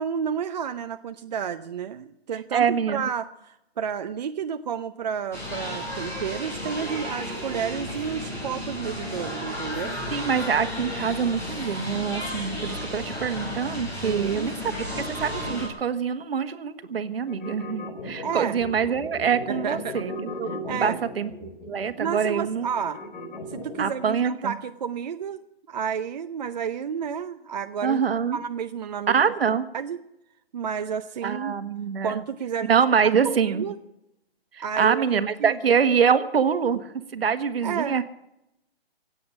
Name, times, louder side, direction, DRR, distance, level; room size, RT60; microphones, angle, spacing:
voice 1, 0.0-10.0 14.0-14.5 18.2-18.6 19.5-20.0 20.7-21.0 22.0-23.0 23.5-25.4 25.7-28.0 28.3-30.0 30.5-31.5 32.0-32.8 33.2-33.8 34.6-35.6 37.6-38.0, right 7 dB, 45° right, 9 dB, 0.6 m, -31 dB
voice 2, 2.5-3.0 10.1-20.1 20.4-20.5 20.8-21.3 21.7-22.7 23.8-24.5 27.8-28.4 29.1-29.6 31.2-32.2 32.7-33.7 34.5-38.0, right 7 dB, 65° right, 10 dB, 1.6 m, -25 dB
sound 1, 5.3-15.7, equal, 10° left, 4.0 m, -33 dB
sound 2, 17.3-24.0, left 2 dB, 50° left, 4.1 m, -37 dB
17.0 x 8.1 x 9.8 m, 0.85 s
hypercardioid pair, 155°, 31 cm